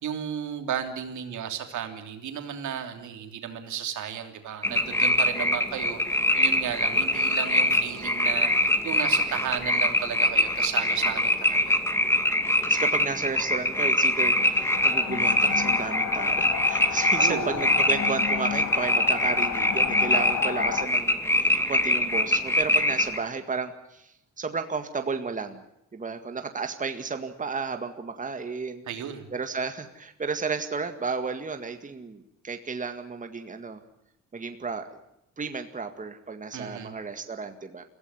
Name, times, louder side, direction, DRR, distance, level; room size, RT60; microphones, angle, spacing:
voice 1, 0.0-11.8 17.2-17.7 28.9-29.3 36.5-36.9, right 8 dB, 75° right, 6 dB, 3.2 m, -34 dB
sound 1, 4.6-23.2, left 1 dB, 10° left, 2.4 m, -24 dB
voice 2, 12.6-25.6 25.9-28.8 29.3-33.8 34.3-34.9 35.4-37.8, right 4 dB, 25° right, 7 dB, 1.9 m, -33 dB
sound 2, 14.3-20.9, left 9 dB, 65° left, 2.0 m, -32 dB
22.5 x 16.0 x 9.8 m, 0.85 s
cardioid pair, 90°, 30 cm